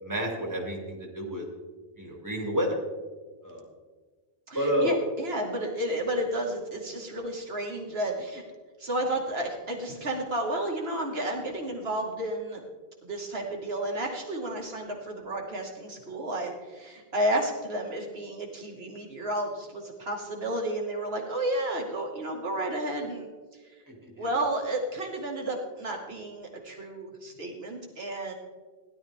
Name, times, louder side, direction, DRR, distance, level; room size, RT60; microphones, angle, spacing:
voice 1, 0.0-1.4 2.0-2.8 3.4-3.6 4.5-5.0 24.0-24.3, equal, 20° right, 0 dB, 2.6 m, -29 dB
voice 2, 4.5-8.4 8.8-12.6 13.0-23.3 23.7-23.8 24.2-28.3, right 1 dB, 75° right, 1 dB, 2.2 m, -32 dB
16.5 x 11.5 x 3.6 m, 1.4 s
omnidirectional pair, 1.0 m